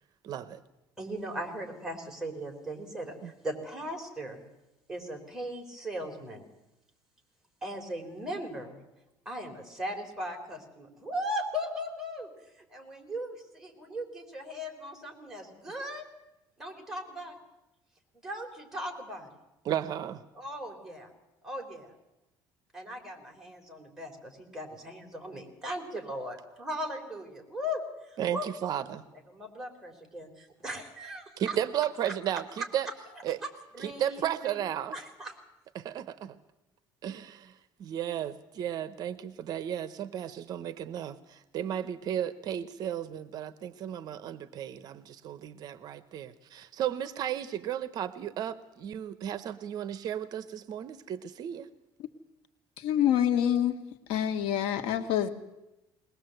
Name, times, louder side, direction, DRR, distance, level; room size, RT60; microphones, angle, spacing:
voice 1, 0.2-0.6 3.2-3.3 19.6-20.2 28.2-29.0 31.4-32.9 33.2-33.4 33.8-34.9 35.7-36.3 37.0-37.5 37.8-51.7, right 10 dB, 45° right, 14 dB, 0.8 m, -34 dB
voice 2, 1.0-4.4 4.9-6.5 7.6-8.8 9.3-12.3 12.7-16.0 16.6-17.4 18.2-19.3 20.3-21.1 21.4-21.9 22.7-27.8 28.1-28.5 29.3-31.6 32.0-32.1 33.4-33.5 33.7-34.6 34.9-35.3, equal, 5° right, 1 dB, 3.9 m, -38 dB
voice 3, 52.8-53.7 54.1-55.3, left 10 dB, 85° left, 8 dB, 1.6 m, -26 dB
21.5 x 20.0 x 7.8 m, 0.94 s
cardioid pair, 165°, 9 cm